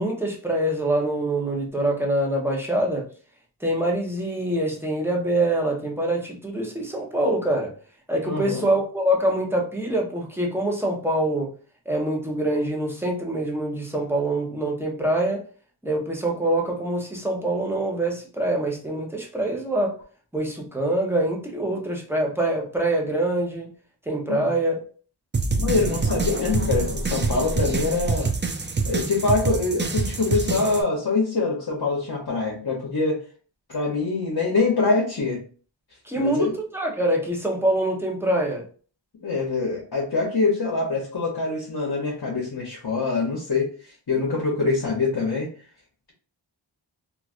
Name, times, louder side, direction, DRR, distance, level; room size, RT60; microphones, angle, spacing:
voice 1, 0.0-3.0 3.6-7.7 8.1-11.5 11.9-15.4 15.8-19.9 20.3-23.7 24.1-24.8 36.0-38.6, right 1 dB, 5° right, -1 dB, 0.8 m, -25 dB
voice 2, 8.2-8.6 24.3-24.5 25.6-28.3 28.9-33.2 33.7-35.4 36.2-36.5 39.2-43.7 44.1-45.5, left 3 dB, 55° left, -2 dB, 0.8 m, -24 dB
sound 1, 25.3-30.8, right 4 dB, 25° right, 0.4 m, -26 dB
3.1 x 2.4 x 2.5 m, 0.41 s
wide cardioid pair, 40°, 46 cm